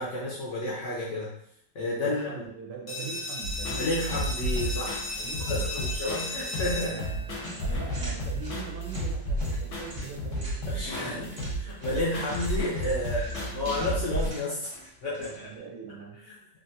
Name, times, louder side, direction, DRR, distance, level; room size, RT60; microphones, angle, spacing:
voice 1, 0.0-1.3 1.7-2.4 3.8-5.1 5.5-7.0 10.7-11.3 11.6-15.5 16.3-16.4, left 1 dB, 60° left, -6 dB, 0.8 m, -31 dB
voice 2, 2.0-4.3 5.2-5.9 6.8-7.3 7.6-11.6 13.0-13.6 15.2-16.2, right 6 dB, 75° right, 0 dB, 1.3 m, -42 dB
sound 1, 2.9-8.3, left 2 dB, 30° left, 0.4 m, -36 dB
sound 2, 3.4-14.3, equal, 80° left, 1.5 m, -32 dB
sound 3, 7.4-15.6, equal, 30° right, 0.8 m, -46 dB
3.4 x 2.5 x 2.7 m, 0.72 s
omnidirectional pair, 1.9 m